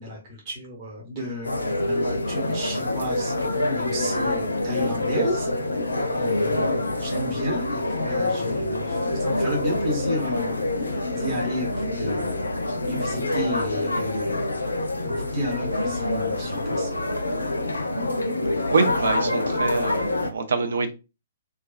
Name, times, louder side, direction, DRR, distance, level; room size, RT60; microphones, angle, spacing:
voice 1, 0.0-12.4 12.8-14.5 15.0-16.9, equal, 35° right, 0.9 m, -33 dB
sound 1, 1.4-20.3, left 2 dB, 75° left, 0.4 m, -26 dB
voice 2, 18.7-20.9, right 4 dB, 60° right, 0.5 m, -25 dB
2.3 x 2.3 x 2.4 m
figure-of-eight pair, 120°, 0 cm